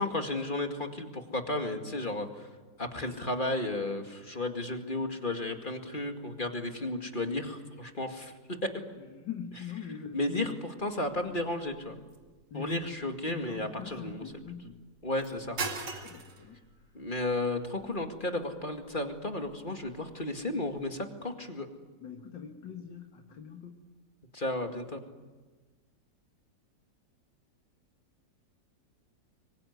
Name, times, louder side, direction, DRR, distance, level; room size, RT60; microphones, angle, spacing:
voice 1, 0.0-2.5 2.8-8.3 10.1-11.9 12.5-14.4 15.0-16.0 16.9-21.7 24.3-25.0, left 2 dB, 30° left, 4 dB, 2.3 m, -33 dB
voice 2, 9.0-10.5 12.5-13.0 13.3-14.8 16.0-16.6 22.0-23.9, left 7 dB, 85° left, 3 dB, 2.5 m, -42 dB
sound 1, 10.8-20.9, right 3 dB, 80° right, 3.0 m, -45 dB
25.5 x 23.5 x 9.5 m, 1.3 s
omnidirectional pair, 1.9 m